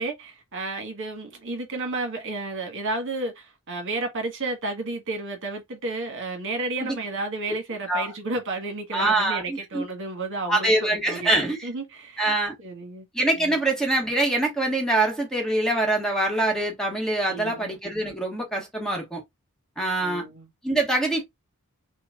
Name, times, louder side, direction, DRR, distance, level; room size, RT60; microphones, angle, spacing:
voice 1, 0.0-11.3 11.6-12.2 12.6-13.1 13.4-13.5 17.3-17.7 20.0-20.5, right 3 dB, 55° right, 1.5 m, -32 dB
voice 2, 8.9-9.8 10.5-11.7 12.2-12.5 13.1-19.2 19.8-20.2 20.6-21.2, right 2 dB, 5° left, 1.3 m, -24 dB
5.9 x 2.3 x 3.7 m
head